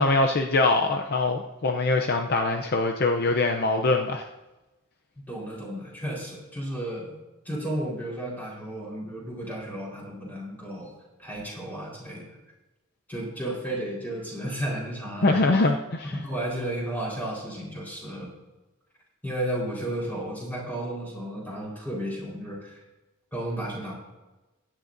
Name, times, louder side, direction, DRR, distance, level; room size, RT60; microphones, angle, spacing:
voice 1, 0.0-4.3 15.2-16.1, left 3 dB, 45° left, 4 dB, 0.6 m, -23 dB
voice 2, 5.3-7.2 7.4-10.9 11.2-12.2 13.1-15.4 16.2-18.3 19.2-22.8 23.3-23.9, right 1 dB, 10° left, -4 dB, 4.1 m, -33 dB
16.5 x 10.5 x 2.6 m, 1.1 s
head